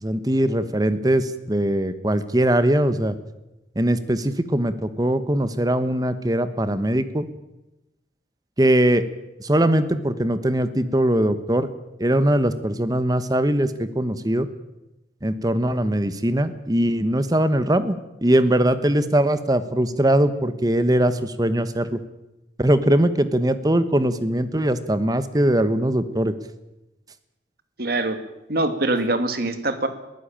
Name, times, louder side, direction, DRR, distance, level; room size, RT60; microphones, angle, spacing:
voice 1, 0.0-3.1 3.8-7.3 8.6-9.0 9.4-11.7 12.0-14.5 15.2-22.0 22.6-26.3, right 1 dB, 20° right, 12 dB, 1.1 m, -21 dB
voice 2, 27.8-28.2 28.5-29.9, right 2 dB, 55° right, 9 dB, 2.2 m, -23 dB
22.0 x 15.0 x 8.8 m, 0.97 s
head